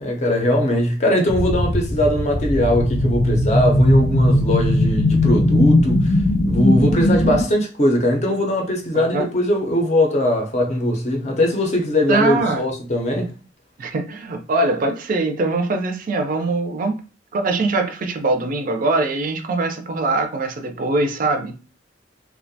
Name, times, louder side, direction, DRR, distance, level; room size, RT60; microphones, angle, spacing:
voice 1, 0.0-6.2 6.5-13.3, left 1 dB, 40° left, 0.6 m, -20 dB
sound 1, 1.3-7.4, left 1 dB, 70° left, 0.7 m, -18 dB
voice 2, 8.9-9.3 12.1-12.6 13.8-17.0 17.3-21.7, right 2 dB, 45° right, 0.4 m, -22 dB
2.4 x 2.1 x 2.6 m
head